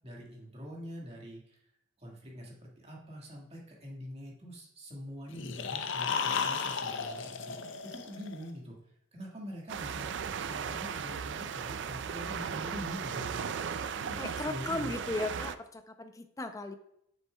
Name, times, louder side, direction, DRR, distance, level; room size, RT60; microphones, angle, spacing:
voice 1, 0.0-1.6 2.0-8.8 9.1-10.1 10.4-13.3 13.9-14.9, equal, 30° right, -2 dB, 1.6 m, -44 dB
sound 1, 5.3-8.4, left 6 dB, 65° left, 0.6 m, -34 dB
sound 2, 9.7-15.6, right 7 dB, 60° right, 0.4 m, -36 dB
voice 2, 14.2-16.8, left 2 dB, 15° left, 8 dB, 0.5 m, -36 dB
7.5 x 6.3 x 2.2 m, 0.76 s
head